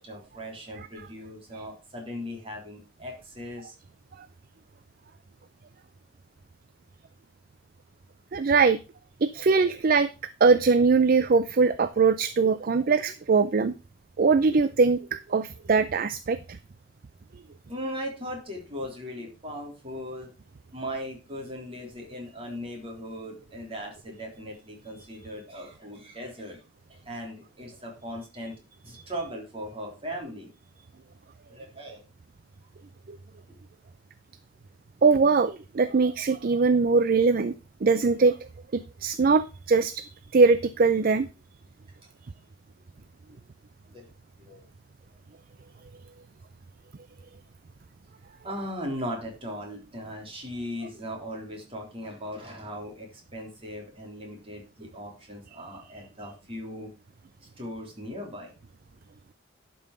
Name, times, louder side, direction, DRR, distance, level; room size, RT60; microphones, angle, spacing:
voice 1, 0.0-3.7 17.7-20.3 20.7-26.6 26.9-28.5 28.8-30.5 31.5-32.0 43.9-44.1 44.4-44.7 48.4-56.9 57.6-58.5, equal, 30° right, 0 dB, 3.6 m, -38 dB
voice 2, 8.3-8.8 9.2-10.1 10.4-13.7 14.2-16.4 35.0-37.5 37.8-38.3 38.7-40.1 40.3-41.3, right 4 dB, 50° right, 13 dB, 0.5 m, -21 dB
11.5 x 5.5 x 5.0 m, 0.31 s
head